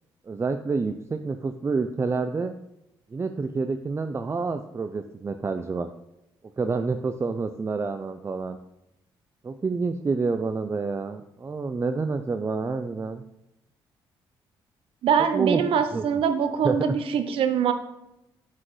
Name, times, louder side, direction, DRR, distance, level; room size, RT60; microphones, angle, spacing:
voice 1, 0.3-2.5 3.1-5.9 6.6-8.6 9.4-13.2 15.3-15.6 15.9-16.2 16.6-16.9, right 4 dB, 30° right, 7 dB, 0.4 m, -28 dB
voice 2, 15.0-17.7, right 7 dB, 75° right, 9 dB, 0.7 m, -23 dB
7.4 x 5.9 x 3.2 m, 0.87 s
supercardioid pair, 60°, 9 cm